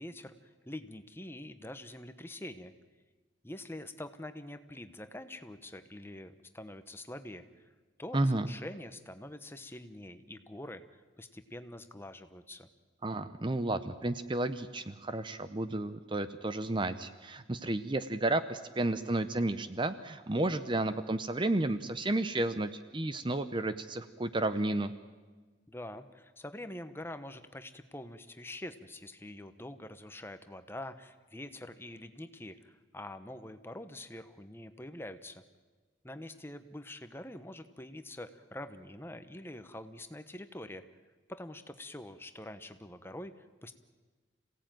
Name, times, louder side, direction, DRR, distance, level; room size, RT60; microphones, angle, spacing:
voice 1, 0.0-2.7 3.4-7.7 8.0-10.8 11.2-12.7 25.7-35.4 36.0-40.8 41.3-43.7, left 1 dB, 10° left, 10 dB, 1.1 m, -45 dB
voice 2, 8.1-8.5 13.0-24.9, right 2 dB, 25° right, 11 dB, 0.7 m, -32 dB
27.0 x 17.0 x 9.2 m, 1.4 s
head